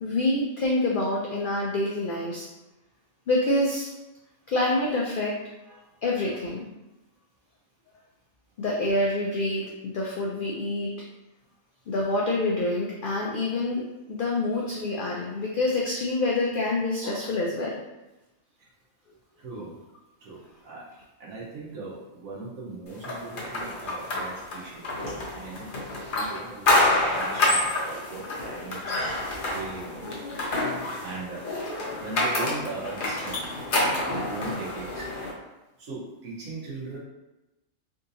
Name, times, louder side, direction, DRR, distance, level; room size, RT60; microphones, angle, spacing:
voice 1, 0.0-2.5 3.3-3.9 4.5-5.4 5.7-5.8 6.0-6.7 8.6-10.9 11.9-13.8 14.1-17.8, left 2 dB, 85° left, -3 dB, 0.4 m, -26 dB
voice 2, 19.4-19.8 20.2-20.9 21.2-30.2 31.0-31.5 32.0-33.5 33.8-35.1 35.8-37.0, right 3 dB, 80° right, -5 dB, 1.4 m, -39 dB
sound 1, 23.0-35.3, left 2 dB, 50° left, 0.7 m, -28 dB
3.7 x 2.7 x 2.6 m, 1.0 s
omnidirectional pair, 1.4 m